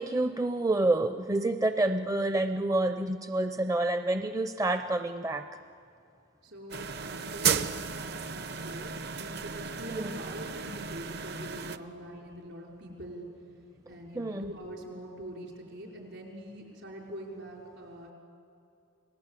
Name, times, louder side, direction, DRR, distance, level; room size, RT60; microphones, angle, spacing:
voice 1, 0.0-5.4 9.9-10.2 14.1-14.5, right 2 dB, 15° right, 8 dB, 0.5 m, -28 dB
voice 2, 6.4-13.3 13.9-18.1, equal, 70° right, -1 dB, 5.2 m, -44 dB
sound 1, 6.7-11.8, right 6 dB, 55° right, 0.8 m, -34 dB
29.5 x 19.0 x 8.3 m, 2.6 s
head